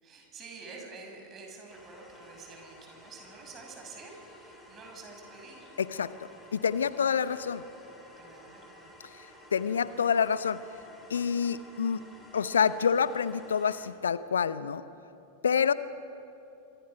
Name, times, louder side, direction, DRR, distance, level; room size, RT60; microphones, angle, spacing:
voice 1, 0.0-6.1 6.9-7.1 8.2-8.9 9.3-9.4, right 4 dB, 25° right, 2 dB, 6.3 m, -48 dB
sound 1, 1.7-13.9, left 1 dB, 5° left, 5.2 m, -53 dB
voice 2, 5.8-6.1 6.5-7.6 9.1-9.3 9.5-10.6 11.1-12.0 12.3-14.8 15.4-15.7, left 7 dB, 70° left, 16 dB, 0.7 m, -27 dB
26.5 x 24.0 x 5.8 m, 2.7 s
figure-of-eight pair, 90°, 0 cm